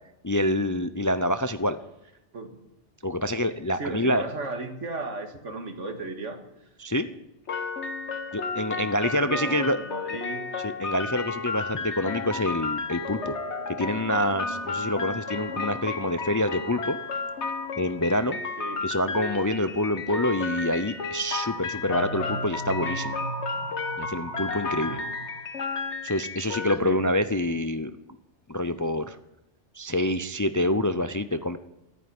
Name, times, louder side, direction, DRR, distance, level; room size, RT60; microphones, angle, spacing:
voice 1, 0.2-1.8 3.0-4.2 6.8-7.1 8.3-9.8 10.6-13.3 13.7-17.0 17.8-18.4 18.8-23.1 24.0-25.0 26.0-27.9 28.5-29.2 29.7-31.6, left 1 dB, 25° left, 11 dB, 0.4 m, -26 dB
voice 2, 3.7-6.7 8.7-10.5 18.6-18.9 24.9-25.1 26.8-27.0, right 3 dB, 80° right, 6 dB, 2.3 m, -36 dB
sound 1, 7.5-26.8, left 4 dB, 70° left, 1.6 m, -33 dB
sound 2, 13.0-25.4, right 3 dB, 40° right, 2.2 m, -41 dB
14.5 x 9.5 x 9.5 m, 0.88 s
omnidirectional pair, 1.2 m